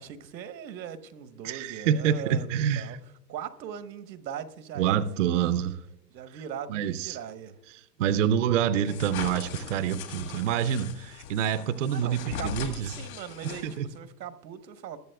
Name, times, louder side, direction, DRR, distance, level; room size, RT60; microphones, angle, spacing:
voice 1, 0.0-3.0 3.3-5.4 6.1-7.6 8.0-8.2 11.9-15.0, right 8 dB, 90° right, 1.1 m, -40 dB
voice 2, 1.4-3.0 4.8-5.8 6.3-6.4 6.7-7.2 7.7-12.9 13.4-13.9, right 9 dB, 50° right, 0.5 m, -27 dB
sound 1, 8.8-14.0, left 8 dB, 55° left, 2.0 m, -40 dB
20.5 x 7.0 x 2.2 m
hypercardioid pair, 165°, 50 cm